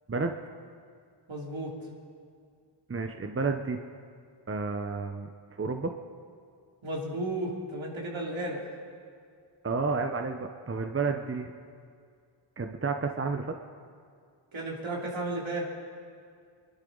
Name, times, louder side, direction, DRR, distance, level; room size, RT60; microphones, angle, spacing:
voice 1, 1.3-1.7 6.8-8.6 14.5-15.7, right 1 dB, 70° right, -2 dB, 3.2 m, -33 dB
voice 2, 2.9-3.8 4.5-5.3 5.6-5.9 9.6-11.5 12.6-13.5, right 4 dB, 25° right, 5 dB, 0.9 m, -31 dB
24.0 x 12.0 x 4.0 m, 2.3 s
cardioid pair, 45°, 48 cm